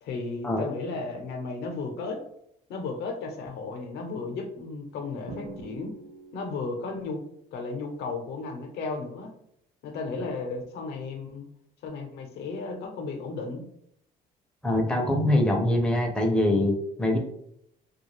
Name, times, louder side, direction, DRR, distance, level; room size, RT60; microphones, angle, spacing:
voice 1, 0.0-2.2 2.7-5.9 6.3-7.2 7.5-9.3 9.8-11.5 11.8-13.6, left 3 dB, 75° left, 4 dB, 0.6 m, -34 dB
Drum, 5.3-7.0, right 1 dB, 50° right, 0.7 m, -43 dB
voice 2, 14.6-17.2, left 1 dB, 5° left, 1 dB, 0.5 m, -23 dB
2.4 x 2.3 x 3.1 m, 0.73 s
cardioid pair, 110°, 17 cm